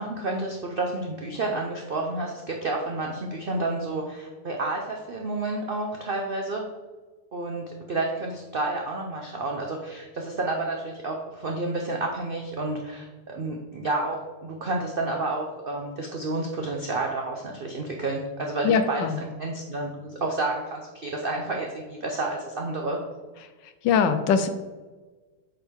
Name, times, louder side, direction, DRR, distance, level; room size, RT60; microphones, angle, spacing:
voice 1, 0.0-6.6 7.3-23.0, right 2 dB, 85° right, 1 dB, 0.5 m, -30 dB
voice 2, 18.6-19.2 23.8-24.5, left 6 dB, 85° left, 10 dB, 1.3 m, -22 dB
7.6 x 4.5 x 3.6 m, 1.3 s
omnidirectional pair, 1.9 m